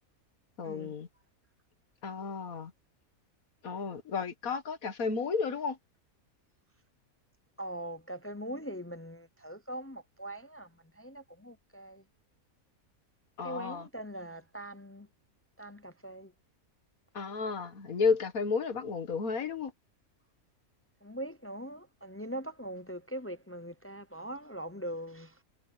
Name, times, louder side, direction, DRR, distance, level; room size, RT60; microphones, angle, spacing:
voice 1, 0.6-1.1 2.0-2.7 3.6-5.8 13.4-13.9 17.1-19.7, left 5 dB, 75° left, 2.0 m, -32 dB
voice 2, 7.6-10.7 11.0-12.0 13.4-15.1 15.6-16.3 21.0-25.3, right 1 dB, 20° left, 0.3 m, -41 dB
omnidirectional pair, 1.5 m